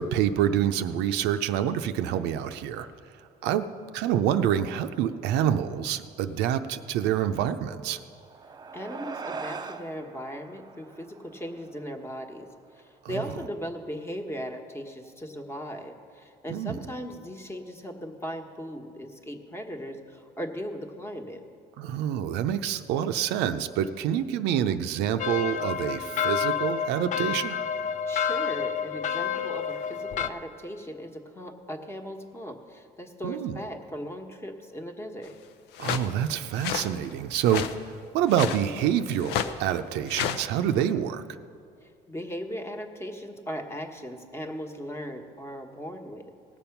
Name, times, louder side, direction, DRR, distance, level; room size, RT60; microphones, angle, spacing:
voice 1, 0.0-2.9 3.4-3.6 3.9-8.0 13.0-13.2 16.5-16.7 21.8-27.6 33.2-33.6 35.8-37.7 38.1-41.2, right 10 dB, 90° right, 9 dB, 0.6 m, -27 dB
sound 1, 8.0-12.8, right 5 dB, 25° right, 0.5 m, -42 dB
voice 2, 8.7-21.4 28.1-35.4 41.8-46.2, equal, 15° left, 3 dB, 1.2 m, -38 dB
sound 2, 25.2-30.3, left 7 dB, 50° left, 0.5 m, -29 dB
sound 3, 35.7-36.1 36.6-36.9 37.4-37.7 38.3-38.7 39.2-39.5 40.1-40.5, left 9 dB, 90° left, 0.6 m, -30 dB
18.0 x 7.0 x 5.9 m, 2.3 s
cardioid pair, 110°, 17 cm